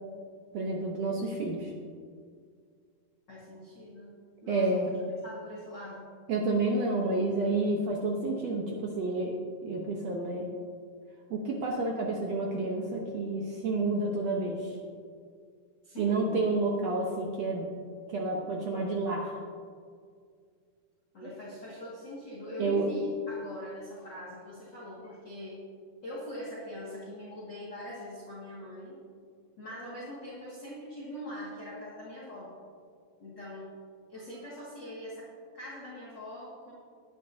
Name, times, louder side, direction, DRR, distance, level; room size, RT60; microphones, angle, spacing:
voice 1, 0.5-1.7 4.4-4.9 6.3-9.3 9.6-10.5 11.3-14.8 16.0-17.7 18.1-19.3 21.2-21.3 22.6-22.9, right 2 dB, 80° right, -1 dB, 1.5 m, -30 dB
voice 2, 3.3-4.2 4.4-4.9 5.2-6.0 15.8-16.4 21.1-25.6 26.0-28.9 29.6-32.5 33.2-33.7 34.1-35.3 35.5-36.7, left 1 dB, 35° left, -7 dB, 2.0 m, -42 dB
18.0 x 10.0 x 2.8 m, 2.1 s
omnidirectional pair, 4.4 m